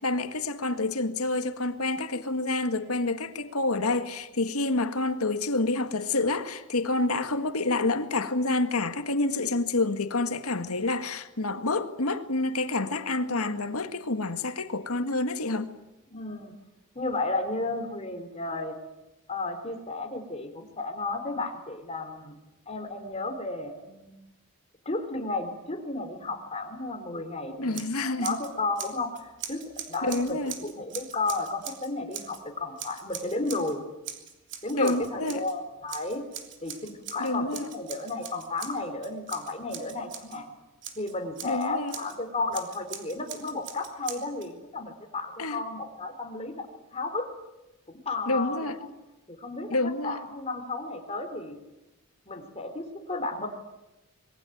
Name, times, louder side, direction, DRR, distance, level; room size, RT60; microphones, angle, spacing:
voice 1, 0.0-15.8 27.5-28.4 30.0-30.5 34.7-35.4 37.2-37.7 41.4-42.0 45.4-45.6 48.2-48.8 49.7-50.2, left 2 dB, 85° left, 1.8 m, -28 dB
voice 2, 16.1-16.5 16.9-18.8 19.3-22.3 22.7-24.2 24.9-27.9 28.1-29.2 29.5-33.8 34.6-36.3 36.6-40.5 41.0-46.7 46.9-47.3 47.9-48.9 49.3-51.6 52.3-53.5, left 2 dB, 30° left, 3.7 m, -33 dB
Scissors, 27.7-28.5 28.8-32.4 32.8-33.7 34.0-35.5 35.9-40.4 40.8-42.2 42.5-44.5, right 8 dB, 55° right, 3.1 m, -41 dB
26.0 x 22.0 x 9.3 m
head